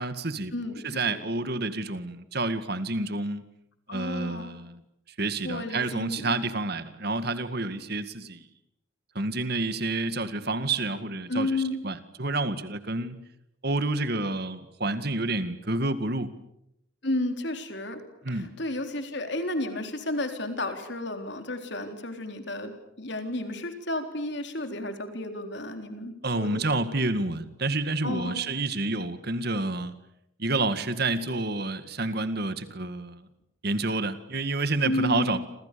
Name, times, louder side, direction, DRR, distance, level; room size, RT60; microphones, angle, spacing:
voice 1, 0.0-0.5 0.8-3.4 3.9-4.8 5.2-8.5 9.2-13.2 13.6-16.3 18.2-18.5 26.2-29.9 30.4-33.3 33.6-35.4, right 2 dB, 50° right, 11 dB, 2.0 m, -29 dB
voice 2, 3.9-4.6 5.4-6.3 11.3-11.8 17.0-18.0 18.3-22.7 23.0-26.6 28.0-28.4 34.8-35.4, left 1 dB, 55° left, 6 dB, 3.9 m, -32 dB
28.0 x 27.5 x 7.0 m, 0.78 s
head